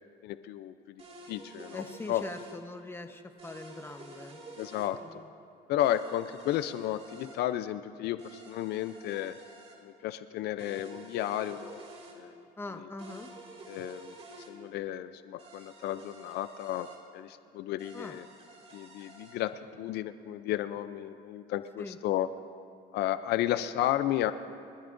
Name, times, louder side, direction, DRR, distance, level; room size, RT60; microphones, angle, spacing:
voice 1, 0.2-2.2 4.6-5.0 5.7-9.4 9.8-11.8 12.1-12.4 13.7-14.2 14.5-16.9 17.1-18.3 18.7-19.5 19.8-22.3 22.9-24.3, left 12 dB, 75° left, 12 dB, 0.5 m, -33 dB
sound 1, 1.0-2.6 3.4-4.9 5.8-7.4 8.2-9.8 10.6-12.2 13.0-14.5 15.4-17.0 17.8-19.4, right 2 dB, 35° right, 2.7 m, -50 dB
voice 2, 1.7-4.4 5.0-5.3 12.6-13.3 17.9-18.2 21.8-22.0, left 2 dB, 15° left, 6 dB, 1.0 m, -42 dB
28.5 x 14.0 x 2.6 m, 2.6 s
cardioid pair, 110°, 17 cm